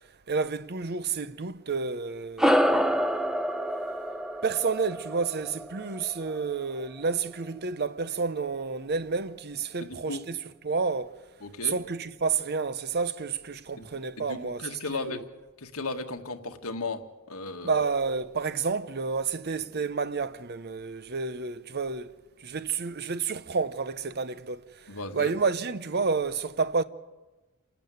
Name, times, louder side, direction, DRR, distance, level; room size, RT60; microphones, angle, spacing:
voice 1, 0.3-3.0 4.4-11.1 11.6-15.2 17.6-22.1 22.4-26.8, right 4 dB, 45° right, 0.8 m, -30 dB
sound 1, 2.4-7.1, equal, ahead, 0.7 m, -27 dB
voice 2, 9.8-10.2 11.4-11.8 13.8-13.9 14.2-15.3 15.6-17.0 17.3-17.8 24.9-25.3, left 3 dB, 80° left, 1.6 m, -35 dB
28.0 x 12.0 x 9.4 m
head